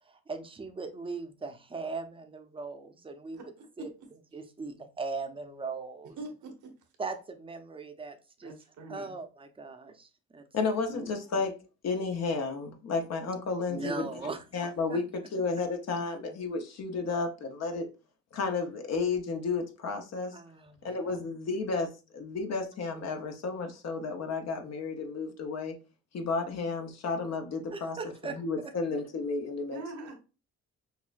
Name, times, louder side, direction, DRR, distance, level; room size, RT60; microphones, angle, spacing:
voice 1, 0.0-3.9 4.3-6.2 7.0-8.5 8.9-10.4 10.9-11.1 13.7-14.4 14.9-15.0 20.3-21.2 27.7-28.4, right 4 dB, 20° right, 0.6 m, -39 dB
voice 2, 3.3-4.1 6.2-6.7 8.4-9.1 29.7-30.1, right 2 dB, 75° right, 1.1 m, -43 dB
voice 3, 10.5-14.1 14.5-17.9 18.3-20.4 20.8-25.8 26.1-28.0 28.2-29.8, left 4 dB, 60° left, 0.8 m, -32 dB
5.7 x 2.0 x 2.5 m
cardioid pair, 90°, 30 cm